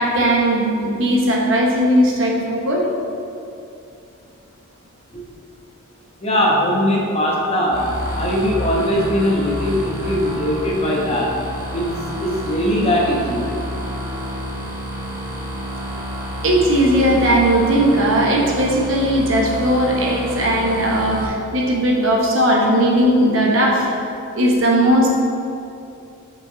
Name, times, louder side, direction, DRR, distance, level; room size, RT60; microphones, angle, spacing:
voice 1, 0.0-2.8 16.4-23.9 24.4-25.1, right 1 dB, 60° right, -2 dB, 1.1 m, -17 dB
voice 2, 6.2-11.4 11.7-13.5, equal, 30° left, -3 dB, 1.0 m, -20 dB
sound 1, 7.7-21.2, equal, 15° right, 1.1 m, -29 dB
5.9 x 5.8 x 3.9 m, 2.7 s
head